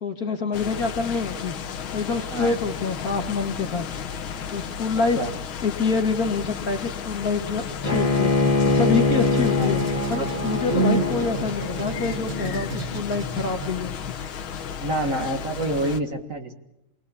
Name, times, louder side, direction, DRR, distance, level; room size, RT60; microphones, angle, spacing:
voice 1, 0.0-1.5 1.9-3.9 4.5-5.2 5.6-8.3 8.6-9.8 10.1-13.9, left 4 dB, 45° left, 4 dB, 2.0 m, -26 dB
sound 1, 0.5-16.0, left 7 dB, 70° left, 2.0 m, -34 dB
Bowed string instrument, 7.8-12.9, left 3 dB, 15° left, 1.9 m, -24 dB
sound 2, 8.5-14.0, right 12 dB, 75° right, 2.2 m, -36 dB
voice 2, 9.5-10.0 10.7-11.1 14.8-16.6, right 3 dB, 40° right, 4 dB, 2.0 m, -26 dB
26.5 x 20.5 x 8.5 m, 0.87 s
omnidirectional pair, 2.4 m